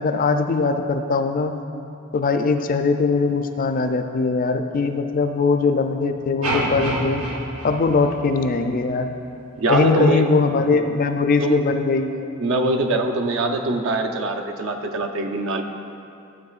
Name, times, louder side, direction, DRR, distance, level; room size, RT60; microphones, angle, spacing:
voice 1, 0.0-1.5 2.1-7.2 7.6-9.1 9.7-12.3, left 4 dB, 40° left, 7 dB, 0.4 m, -21 dB
sound 1, 6.4-8.7, right 1 dB, 85° right, 1.0 m, -27 dB
voice 2, 9.6-10.3 11.4-11.6 12.4-15.6, right 1 dB, 65° right, 3 dB, 0.6 m, -23 dB
12.0 x 7.5 x 2.4 m, 2.6 s
head